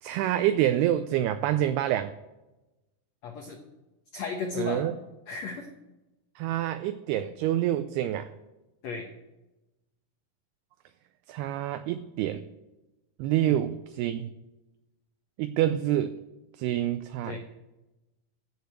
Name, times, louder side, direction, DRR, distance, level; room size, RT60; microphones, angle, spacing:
voice 1, 0.0-2.1 4.6-4.9 6.4-8.3 11.3-12.4 13.2-14.3 15.4-16.1 16.6-17.4, right 12 dB, 80° right, 10 dB, 2.4 m, -27 dB
voice 2, 3.2-3.6 4.1-4.8 5.3-5.7 8.8-9.1 13.4-13.6 17.2-17.4, left 4 dB, 75° left, 3 dB, 1.6 m, -34 dB
15.0 x 6.7 x 8.0 m, 1.0 s
omnidirectional pair, 4.8 m